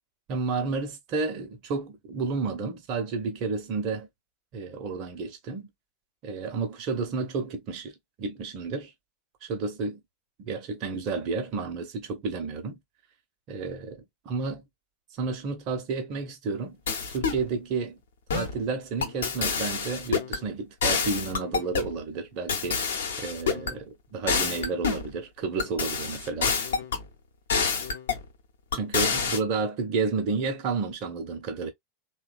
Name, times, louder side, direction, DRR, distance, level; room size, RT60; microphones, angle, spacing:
voice 1, 0.3-4.1 4.5-5.7 6.2-7.9 8.2-8.9 9.4-10.0 10.5-12.8 13.5-14.6 15.2-16.8 17.1-18.0 18.3-22.8 23.2-26.6 28.7-31.7, right 4 dB, 45° right, 0.7 m, -31 dB
sound 1, 16.9-17.4 18.3-18.6 19.0-20.4 20.8-21.9 22.5-23.7 24.3-25.1 25.6-27.0 27.5-28.2 28.7-29.4, left 5 dB, 65° left, 0.8 m, -27 dB
3.0 x 2.2 x 2.4 m
figure-of-eight pair, 85°, 0 cm